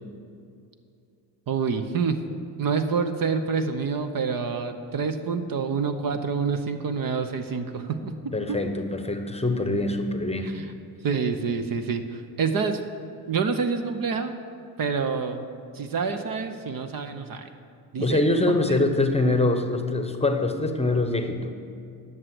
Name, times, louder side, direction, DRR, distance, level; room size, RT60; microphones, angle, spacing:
voice 1, 1.5-2.2 2.6-8.6 10.4-10.7 11.0-12.8 13.3-14.3 14.8-15.4 15.7-17.5 17.9-18.2 18.5-18.8, right 5 dB, 45° right, 7 dB, 0.8 m, -27 dB
voice 2, 8.3-10.5 18.0-21.5, left 2 dB, 15° left, 7 dB, 0.9 m, -24 dB
11.0 x 6.6 x 6.2 m, 2.5 s
hypercardioid pair, 65°, 49 cm